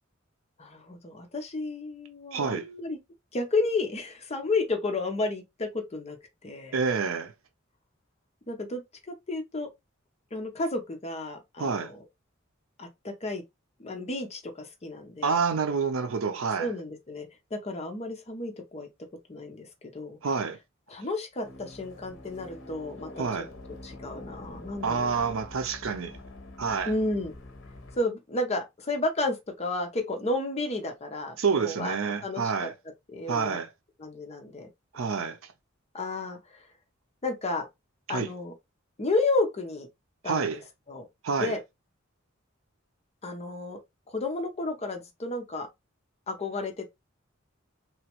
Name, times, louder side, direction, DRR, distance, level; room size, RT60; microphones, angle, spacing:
voice 1, 0.6-3.0 3.3-6.2 6.4-6.7 8.5-8.8 9.1-9.7 10.3-12.0 12.8-13.4 13.8-15.4 16.6-18.9 19.3-20.2 20.9-23.2 23.8-25.3 26.8-27.3 28.0-32.0 32.2-32.7 33.1-33.6 34.0-34.7 35.9-36.6 37.2-37.7 38.1-38.5 39.0-39.9 40.2-40.6 40.9-41.1 41.4-41.6 43.2-43.8 44.1-45.7 46.3-46.9, left 2 dB, 30° left, 0.7 m, -32 dB
voice 2, 2.3-2.7 6.7-7.3 11.6-11.9 15.2-16.7 20.2-20.6 23.2-23.5 24.8-26.1 26.6-26.9 31.4-32.7 33.3-33.7 34.9-35.4 38.1-38.3 40.2-40.6 41.2-41.5, right 5 dB, 80° right, 0.6 m, -28 dB
sound 1, 21.4-28.0, left 1 dB, 65° left, 0.8 m, -45 dB
3.0 x 2.3 x 2.9 m
head